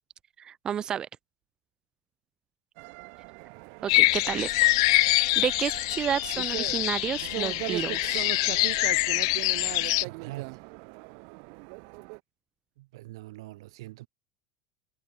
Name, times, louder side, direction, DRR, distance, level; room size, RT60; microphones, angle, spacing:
voice 1, 0.4-1.1 3.8-4.5 5.4-8.2, right 9 dB, 30° right, 0.5 m, -31 dB
sound 1, 2.8-12.2, right 40 dB or more, 70° right, 4.7 m, -40 dB
sound 2, 3.9-10.0, left 23 dB, 80° left, 0.3 m, -25 dB
voice 2, 9.9-10.7 12.8-14.1, right 18 dB, 85° right, 1.6 m, -43 dB
supercardioid pair, 125°, 3 cm